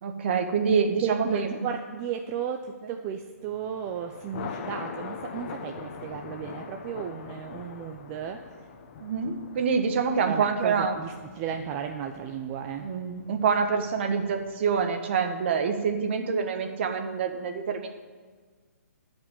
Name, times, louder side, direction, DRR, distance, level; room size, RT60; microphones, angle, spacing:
voice 1, 0.0-1.5 9.0-11.0 12.8-17.9, right 5 dB, 45° right, 5 dB, 1.5 m, -26 dB
voice 2, 1.0-8.4 10.2-12.9, right 8 dB, 25° right, 4 dB, 0.6 m, -34 dB
Thunder, 3.5-14.8, left 5 dB, 40° left, 1.2 m, -43 dB
13.5 x 5.3 x 8.7 m, 1.5 s
hypercardioid pair, 150°, 9 cm